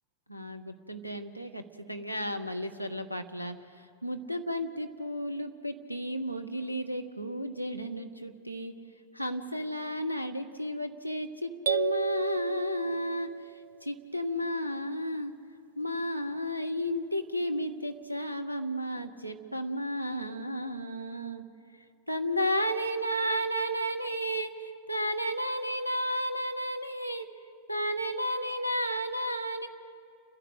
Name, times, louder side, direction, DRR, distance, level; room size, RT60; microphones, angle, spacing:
voice 1, 0.3-8.7 9.1-13.3 13.8-15.3 15.8-21.4 22.1-27.3 27.7-29.7, equal, 90° left, 4 dB, 0.9 m, -33 dB
sound 1, 11.7-13.6, right 11 dB, 60° right, 0.4 m, -33 dB
29.5 x 11.0 x 8.1 m, 2.6 s
figure-of-eight pair, 90°, 0 cm